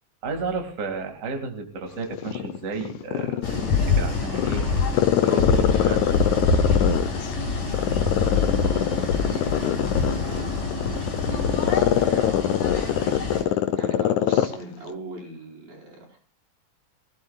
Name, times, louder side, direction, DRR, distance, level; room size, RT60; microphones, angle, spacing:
voice 1, 0.2-3.6 3.9-6.8, right 4 dB, 30° right, 3 dB, 2.1 m, -33 dB
Growling, 2.1-3.9 4.3-7.3 7.7-14.6 14.9-15.0, left 11 dB, 75° left, 2.0 m, -23 dB
sound 1, 3.4-13.4, left 4 dB, 55° left, 6.0 m, -25 dB
voice 2, 8.2-16.2, right 2 dB, 90° right, -2 dB, 6.2 m, -41 dB
24.5 x 16.0 x 2.4 m, 0.38 s
omnidirectional pair, 3.8 m